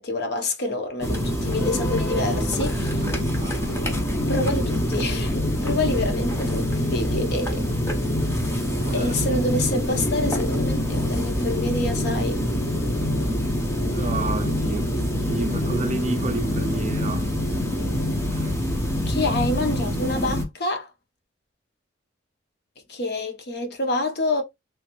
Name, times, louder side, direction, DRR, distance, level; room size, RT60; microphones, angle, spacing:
voice 1, 0.0-3.1 4.3-7.7 8.9-12.4 19.0-20.9 22.9-24.4, left 2 dB, 55° left, 0.8 m, -27 dB
sound 1, 1.0-20.4, equal, 15° left, 0.6 m, -25 dB
voice 2, 2.2-2.6 2.9-3.8 8.8-9.3 13.8-17.3 18.3-18.7, right 2 dB, 35° right, 0.4 m, -31 dB
sound 2, 3.4-18.2, equal, 75° left, 1.0 m, -36 dB
3.2 x 2.5 x 3.0 m
head